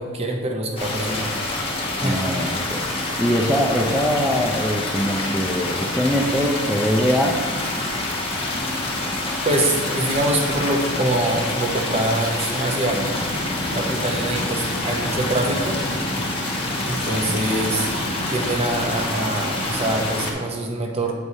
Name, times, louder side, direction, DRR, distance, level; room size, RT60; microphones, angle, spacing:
voice 1, 0.0-1.3 2.0-2.3 9.4-13.3 13.7-15.8 16.8-17.9 18.3-21.1, right 1 dB, 30° right, 1 dB, 0.7 m, -24 dB
sound 1, 0.8-20.3, left 2 dB, 25° left, 1.0 m, -26 dB
voice 2, 2.0-7.4, equal, ahead, -3 dB, 0.4 m, -22 dB
sound 2, 12.8-18.9, equal, 75° right, 1.9 m, -33 dB
8.4 x 4.7 x 2.7 m, 1.5 s
head